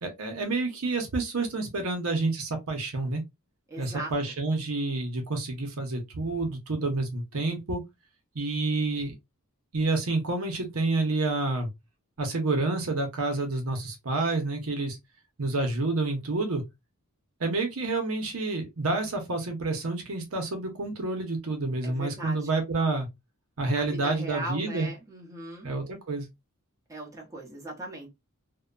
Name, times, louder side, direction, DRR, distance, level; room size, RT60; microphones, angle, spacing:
voice 1, 0.0-3.2 3.8-7.8 8.3-9.1 9.7-11.7 12.2-15.0 15.4-16.6 17.4-23.1 23.6-24.9 25.6-26.2, right 2 dB, 75° right, 0.8 m, -29 dB
voice 2, 3.7-4.1 21.8-22.5 23.8-25.7 26.9-28.1, right 2 dB, 15° right, 0.8 m, -38 dB
2.7 x 2.1 x 2.4 m
head